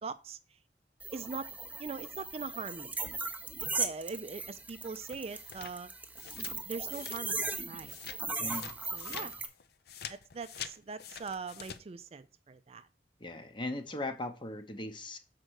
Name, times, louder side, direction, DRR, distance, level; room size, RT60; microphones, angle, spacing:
voice 1, 0.0-0.4 1.1-1.5 1.8-3.0 3.7-5.9 6.7-7.4 7.7-8.0 8.4-9.3 10.1-12.9, right 4 dB, 35° right, 0.4 m, -41 dB
sound 1, 1.0-9.5, right 3 dB, 10° right, 0.7 m, -38 dB
sound 2, 4.8-7.6 7.9-11.8, left 8 dB, 60° left, 0.6 m, -46 dB
voice 2, 8.4-8.7 9.1-9.3 13.2-15.2, left 1 dB, 25° left, 0.9 m, -39 dB
6.5 x 4.5 x 6.3 m
head